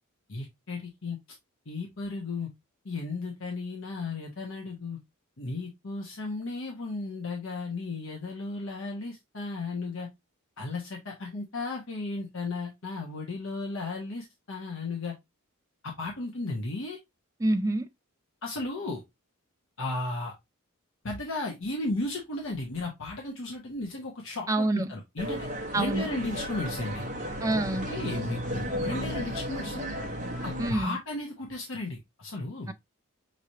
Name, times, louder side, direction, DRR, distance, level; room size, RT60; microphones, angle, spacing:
voice 1, 0.3-1.2 1.7-2.5 2.8-5.0 5.4-10.1 10.6-15.1 15.8-17.0 18.4-19.0 19.8-20.3 21.0-25.5 25.7-27.1 27.5-29.9 30.4-32.7, left 2 dB, 60° left, 1.0 m, -35 dB
voice 2, 17.4-17.9 24.5-24.9 25.7-26.1 27.4-27.9 30.6-31.0 32.7-32.8, right 2 dB, 15° right, 0.3 m, -27 dB
sound 1, 25.2-30.7, equal, 35° right, 0.9 m, -34 dB
5.8 x 3.2 x 2.7 m
head